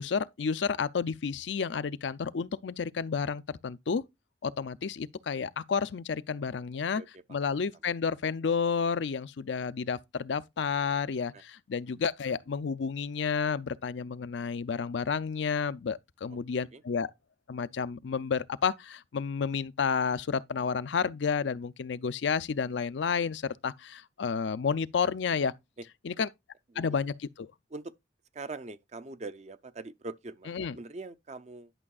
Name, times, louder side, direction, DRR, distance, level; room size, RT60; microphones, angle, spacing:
voice 1, 0.0-4.0 4.4-7.0 7.3-17.1 17.5-25.5 26.0-26.3 26.8-27.5 30.5-30.8, left 6 dB, 80° left, 0.5 m, -31 dB
voice 2, 7.0-7.5 11.3-11.4 16.3-16.4 16.7-16.8 26.2-26.3 26.7-26.8 27.7-27.9 28.3-31.7, right 3 dB, 40° right, 0.6 m, -43 dB
11.0 x 6.1 x 2.3 m
head